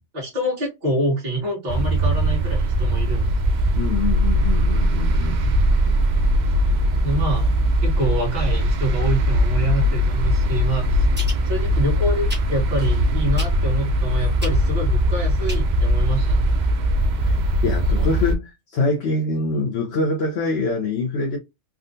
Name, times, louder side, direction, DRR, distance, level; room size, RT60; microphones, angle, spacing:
voice 1, 0.1-3.3 7.0-7.5 7.8-11.1 11.4-16.5, right 1 dB, 40° right, 1.2 m, -26 dB
sound 1, 1.7-18.4, equal, 60° right, 0.5 m, -20 dB
voice 2, 3.8-5.4 17.2-17.3 17.6-21.4, left 3 dB, 65° left, 0.9 m, -24 dB
sound 2, 11.2-11.4 12.3-12.5 13.3-13.7 14.4-14.6 15.5-15.6 15.9-16.0, right 1 dB, 10° right, 0.9 m, -33 dB
3.6 x 2.4 x 2.6 m
omnidirectional pair, 1.2 m